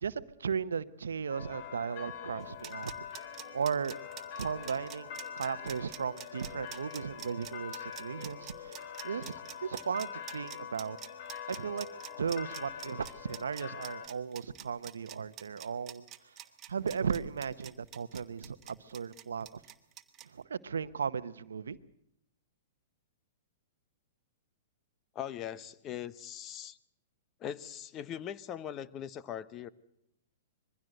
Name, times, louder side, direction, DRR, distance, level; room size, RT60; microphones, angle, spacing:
voice 1, 0.0-2.9 3.5-4.0 4.4-11.0 11.5-11.9 12.2-16.4 16.7-19.6 20.2-21.8, right 6 dB, 90° right, 15 dB, 0.9 m, -36 dB
sound 1, 1.3-14.1, left 8 dB, 50° left, 2.5 m, -44 dB
sound 2, 2.4-20.3, right 11 dB, 25° right, 1.5 m, -47 dB
voice 2, 25.1-26.8 27.4-29.7, left 10 dB, 30° left, 17 dB, 0.9 m, -40 dB
22.0 x 15.5 x 7.8 m, 0.79 s
hypercardioid pair, 130°, 0 cm